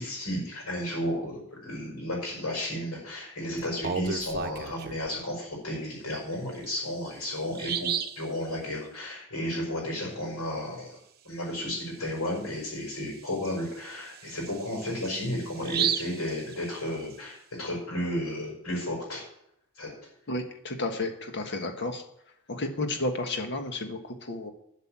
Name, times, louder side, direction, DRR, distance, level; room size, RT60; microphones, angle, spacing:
voice 1, 0.0-11.0 11.2-19.2 19.7-19.9, left 1 dB, 80° left, -2 dB, 5.3 m, -33 dB
Bird vocalization bird call bird song, 3.6-5.1 6.5-6.6 7.1-7.2 7.5-8.2 11.7-11.9 12.2-12.3 12.9-17.1, right 7 dB, 45° right, 0.9 m, -33 dB
voice 2, 20.3-22.0 22.5-24.5, left 2 dB, 55° left, 5 dB, 1.6 m, -32 dB
12.5 x 6.6 x 7.5 m, 0.76 s
head